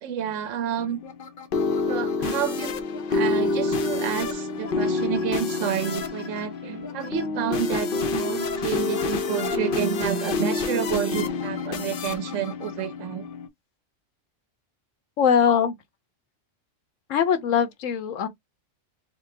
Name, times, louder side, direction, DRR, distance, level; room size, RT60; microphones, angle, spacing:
voice 1, 0.0-1.0 1.9-2.7 3.1-13.3, right 9 dB, 75° right, 1.0 m, -29 dB
sound 1, 0.8-13.5, left 3 dB, 55° left, 0.7 m, -28 dB
voice 2, 15.2-15.7 17.1-18.3, left 7 dB, 85° left, 1.1 m, -21 dB
4.2 x 2.2 x 3.2 m
omnidirectional pair, 1.3 m